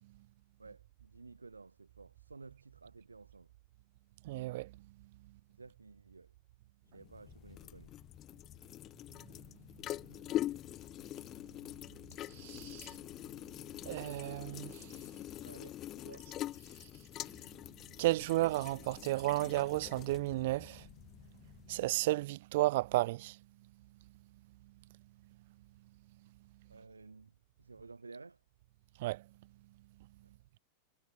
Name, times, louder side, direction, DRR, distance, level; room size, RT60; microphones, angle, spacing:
voice 1, 0.6-3.5 5.6-6.3 6.9-7.9 15.4-16.3 26.7-28.4 30.2-30.3, right 3 dB, 80° right, 7.6 m, -54 dB
voice 2, 4.2-4.7 12.2-13.0 13.8-15.1 18.0-20.9 21.7-23.4 29.0-29.2, right 18 dB, 50° right, 1.2 m, -33 dB
sound 1, 6.9-22.0, left 13 dB, 35° left, 5.5 m, -44 dB
figure-of-eight pair, 90°, 0 cm